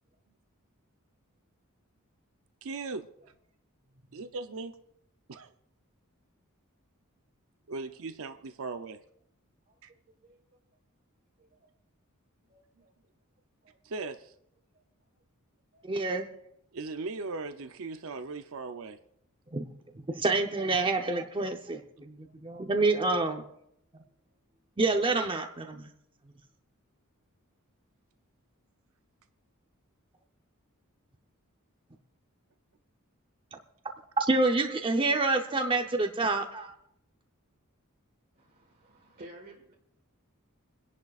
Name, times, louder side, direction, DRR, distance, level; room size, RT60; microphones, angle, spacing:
voice 1, 2.6-3.1 4.1-4.7 5.3-5.5 7.7-9.0 9.8-9.9 13.8-14.3 16.7-19.0, right 3 dB, 65° right, 9 dB, 0.6 m, -38 dB
voice 2, 3.9-4.3 8.0-8.3 9.7-10.0 10.2-10.4 11.6-11.7 12.5-12.9 13.6-13.8 15.7-15.9 38.4-39.7, right 1 dB, 45° right, 0 dB, 1.4 m, -54 dB
voice 3, 15.8-16.2 19.5-19.6 19.9-23.4 24.8-25.9 34.2-36.7, right 3 dB, 25° right, 4 dB, 0.7 m, -27 dB
28.0 x 10.5 x 2.4 m, 0.74 s
head